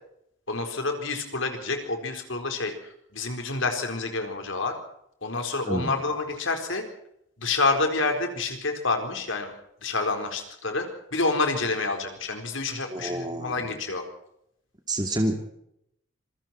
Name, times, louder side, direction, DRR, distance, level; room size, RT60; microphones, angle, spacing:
voice 1, 0.5-4.7 5.2-6.8 7.4-9.5 9.8-10.9 11.1-14.0, left 3 dB, 75° left, 5 dB, 4.5 m, -28 dB
voice 2, 12.9-13.6 14.9-15.4, right 1 dB, 20° right, 4 dB, 2.4 m, -28 dB
26.5 x 22.5 x 4.5 m, 0.76 s
head